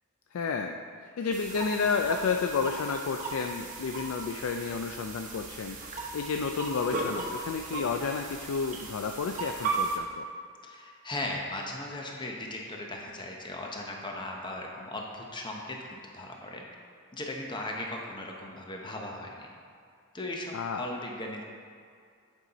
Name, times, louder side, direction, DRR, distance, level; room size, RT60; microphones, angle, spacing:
voice 1, 0.3-10.3 20.5-20.9, left 5 dB, 65° left, 4 dB, 0.4 m, -31 dB
sound 1, 1.3-10.0, right 3 dB, 40° right, 1.1 m, -36 dB
voice 2, 10.6-16.6 17.1-19.5 20.1-21.4, left 1 dB, 20° left, 0 dB, 0.8 m, -38 dB
9.1 x 5.5 x 4.0 m, 2.3 s
head